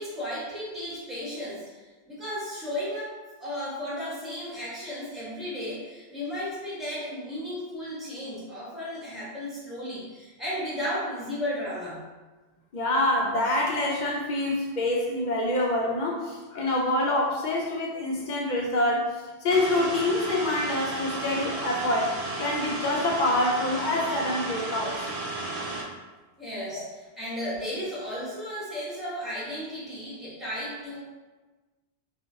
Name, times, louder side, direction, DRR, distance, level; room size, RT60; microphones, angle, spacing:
voice 1, 0.0-12.0 26.4-31.0, equal, ahead, -11 dB, 1.0 m, -34 dB
voice 2, 12.7-25.1, left 1 dB, 55° left, -2 dB, 0.5 m, -26 dB
sound 1, 19.5-25.8, right 2 dB, 85° right, 0.8 m, -33 dB
2.9 x 2.4 x 2.6 m, 1.2 s
omnidirectional pair, 1.1 m